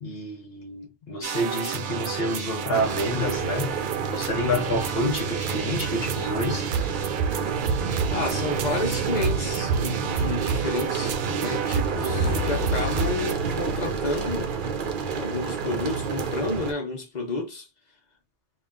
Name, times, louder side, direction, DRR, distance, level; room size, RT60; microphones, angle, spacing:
voice 1, 0.0-3.7 4.1-6.7, left 1 dB, 60° left, 1.2 m, -28 dB
sound 1, 1.2-13.3, right 6 dB, 80° right, 0.9 m, -30 dB
sound 2, 2.7-16.7, right 5 dB, 55° right, 0.7 m, -30 dB
voice 2, 8.1-14.6 15.1-17.7, left 3 dB, 40° left, 1.1 m, -31 dB
sound 3, 11.6-14.9, left 7 dB, 75° left, 0.8 m, -34 dB
3.6 x 2.3 x 3.7 m
omnidirectional pair, 1.2 m